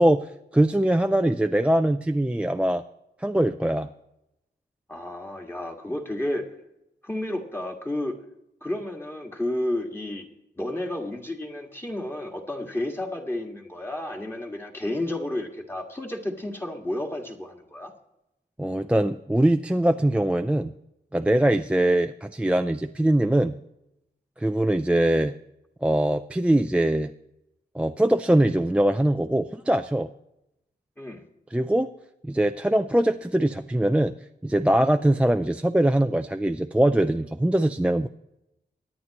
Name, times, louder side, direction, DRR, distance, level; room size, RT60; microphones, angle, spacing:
voice 1, 0.0-2.8 3.2-3.9 18.6-20.7 21.1-23.5 24.4-25.3 25.8-27.1 27.7-30.1 31.5-31.9 32.2-34.1 34.4-38.1, right 1 dB, 5° right, 7 dB, 0.3 m, -22 dB
voice 2, 4.9-6.5 7.0-8.2 8.6-10.3 10.6-17.9 31.0-31.2, left 1 dB, 15° left, 1 dB, 1.8 m, -31 dB
23.5 x 9.7 x 3.0 m, 0.87 s
wide cardioid pair, 160°, 18 cm